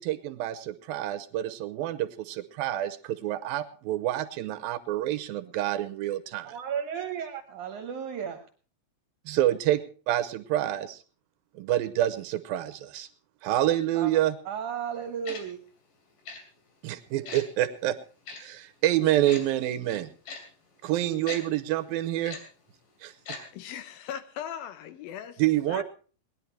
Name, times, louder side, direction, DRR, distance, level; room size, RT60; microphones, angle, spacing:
voice 1, 0.0-6.6 9.3-9.8 10.1-11.0 11.5-13.1 13.4-14.4 16.8-18.0 18.4-20.1 20.8-22.4 23.0-23.1 25.4-25.8, right 13 dB, 85° right, 2.7 m, -27 dB
voice 2, 6.5-8.5 13.9-14.1 14.5-15.6, right 8 dB, 65° right, 2.3 m, -34 dB
Tick-tock, 15.3-15.4 16.3-16.4 17.3-17.4 18.3-18.4 19.3-19.4 20.3-20.4 21.3-21.4 22.3-22.4 23.3-23.4 23.7-23.8, left 4 dB, 65° left, 4.2 m, -38 dB
voice 3, 23.5-25.4 25.7-25.8, left 9 dB, 80° left, 2.9 m, -38 dB
19.5 x 11.0 x 4.6 m
omnidirectional pair, 4.1 m